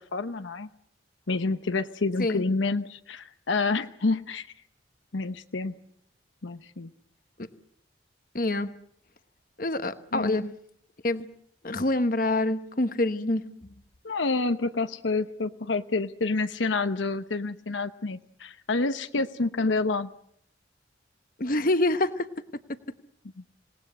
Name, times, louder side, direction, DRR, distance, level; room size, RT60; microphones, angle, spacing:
voice 1, 0.1-0.7 1.3-4.5 5.1-5.7 6.4-6.9 10.1-10.5 14.0-20.1, left 3 dB, 80° left, 10 dB, 0.9 m, -28 dB
voice 2, 8.3-8.7 9.6-10.4 11.0-11.2 11.6-13.5 21.4-22.3, left 2 dB, 45° left, 11 dB, 1.1 m, -26 dB
27.5 x 19.0 x 7.9 m, 0.69 s
head